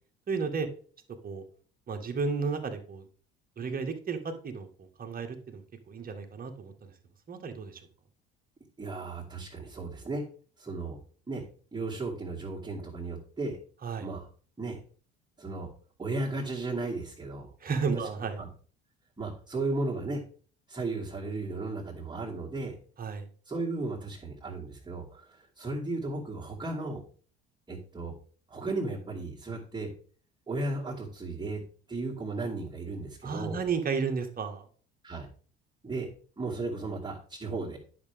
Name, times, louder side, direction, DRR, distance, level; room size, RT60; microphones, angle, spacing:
voice 1, 0.3-0.7 1.2-1.4 1.9-3.1 3.6-4.7 5.0-5.6 5.9-6.9 7.3-7.8 13.8-14.1 17.6-18.4 23.0-23.2 33.2-34.6, right 5 dB, 30° right, 4 dB, 1.8 m, -32 dB
voice 2, 8.8-10.2 10.6-11.0 11.3-11.4 11.7-13.6 14.0-14.3 14.6-14.8 15.4-15.7 16.0-17.5 17.9-18.1 18.4-18.5 19.2-20.2 20.7-22.7 23.4-27.0 27.7-28.1 28.5-29.9 30.5-31.6 31.9-33.6 35.0-35.3 35.8-37.8, right 2 dB, 15° right, -6 dB, 2.6 m, -35 dB
10.5 x 6.1 x 3.6 m, 0.43 s
figure-of-eight pair, 60°, 29 cm